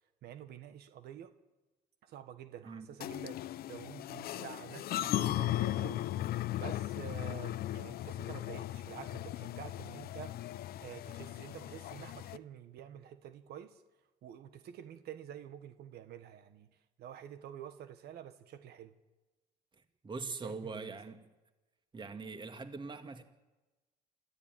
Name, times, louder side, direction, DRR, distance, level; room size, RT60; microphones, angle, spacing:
voice 1, 0.2-1.3 2.0-3.4 3.7-13.8 14.2-18.9 20.4-21.0, right 10 dB, 70° right, 9 dB, 1.6 m, -49 dB
sound 1, 3.0-12.4, left 14 dB, 65° left, 0.7 m, -37 dB
voice 2, 20.0-21.2 21.9-23.2, right 4 dB, 30° right, 7 dB, 2.3 m, -42 dB
28.0 x 13.5 x 9.3 m, 1.1 s
cardioid pair, 110°, 17 cm